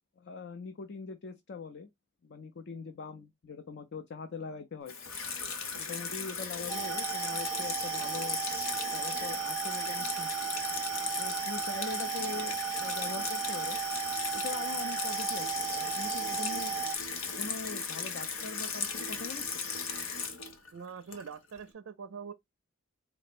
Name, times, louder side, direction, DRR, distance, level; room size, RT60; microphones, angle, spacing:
voice 1, 0.2-1.9 2.2-4.9 5.8-8.4 8.9-10.5 11.2-13.8 14.3-16.7 17.4-19.5, left 4 dB, 55° left, 0.5 m, -42 dB
Water tap faucet / Sink (filling or washing), 4.9-21.6, left 5 dB, 90° left, 0.9 m, -36 dB
sound 1, 6.7-17.0, right 10 dB, 25° right, 0.5 m, -35 dB
voice 2, 20.7-22.3, right 6 dB, 80° right, 0.4 m, -43 dB
4.2 x 2.1 x 4.1 m
head